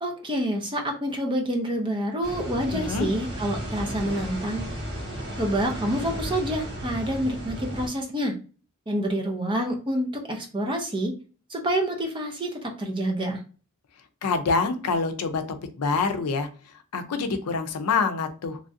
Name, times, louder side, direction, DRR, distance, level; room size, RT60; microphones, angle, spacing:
voice 1, 0.0-4.7 5.4-8.3 8.9-11.1 11.5-13.4, right 1 dB, 20° right, 3 dB, 0.6 m, -27 dB
sound 1, 2.2-7.9, equal, 50° right, 1.2 m, -34 dB
voice 2, 2.7-3.1 14.2-15.4 15.8-16.5 16.9-18.6, left 4 dB, 85° left, 8 dB, 0.5 m, -26 dB
3.1 x 2.4 x 2.6 m, 0.36 s
head